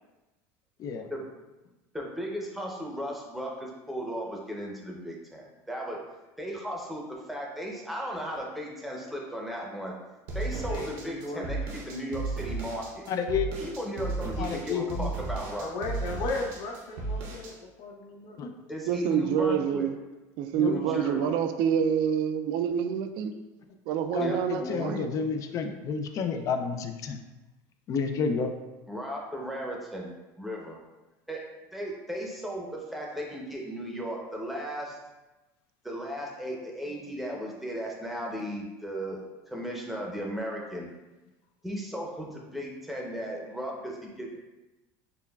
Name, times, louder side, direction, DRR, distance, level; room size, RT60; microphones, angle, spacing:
voice 1, 1.9-6.0 6.4-9.9 10.3-13.0 13.6-15.7 18.7-19.9 20.7-21.2 24.2-25.0 28.9-30.8 31.3-31.4 31.7-35.0 35.8-40.9 41.6-44.4, equal, ahead, -2 dB, 0.7 m, -36 dB
sound 1, 10.3-17.5, right 3 dB, 85° right, 0.9 m, -34 dB
voice 2, 10.5-11.5 13.6-14.2 15.6-18.4 20.8-21.4, left 2 dB, 60° left, 1 dB, 0.8 m, -37 dB
voice 3, 13.1-13.5 14.4-15.1 18.4-18.5 20.6-20.8 24.1-27.2 27.9-28.5, left 6 dB, 40° left, 6 dB, 0.4 m, -30 dB
voice 4, 18.9-19.9 20.4-23.3 23.9-25.1, right 8 dB, 60° right, 8 dB, 0.4 m, -27 dB
6.8 x 2.3 x 2.3 m, 1.1 s
supercardioid pair, 130°, 9 cm